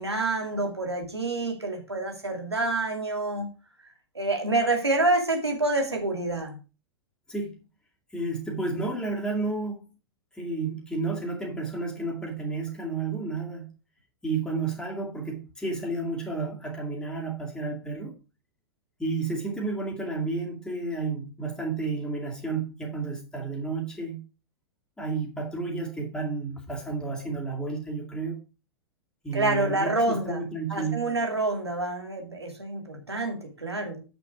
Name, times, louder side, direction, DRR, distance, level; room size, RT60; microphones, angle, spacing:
voice 1, 0.0-3.5 4.1-6.6 29.3-30.4 30.7-34.0, right 2 dB, 85° right, 2.4 m, -27 dB
voice 2, 7.3-7.6 8.1-9.9 10.3-13.7 14.2-18.2 19.0-24.2 25.0-28.4 29.2-31.1, right 3 dB, 5° left, 2.3 m, -31 dB
8.1 x 6.0 x 4.8 m
figure-of-eight pair, 100°, 13 cm